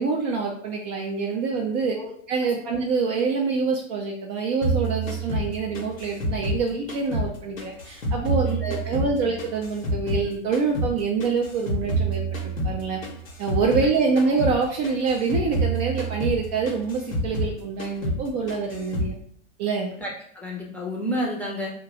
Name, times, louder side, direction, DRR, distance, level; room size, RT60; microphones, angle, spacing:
voice 1, 0.0-2.0 2.3-13.0 13.4-19.2 19.6-19.9, right 4 dB, 35° right, 0 dB, 0.4 m, -26 dB
sound 1, 4.6-7.3 7.6-10.3 10.5-13.9 14.2-14.6 14.8-17.5 17.8-18.2 18.5-19.1, right 1 dB, 90° left, 0.8 m, -27 dB
voice 2, 20.0-21.7, equal, 5° left, -3 dB, 0.6 m, -30 dB
2.6 x 2.2 x 3.8 m, 0.63 s
figure-of-eight pair, 95°, 39 cm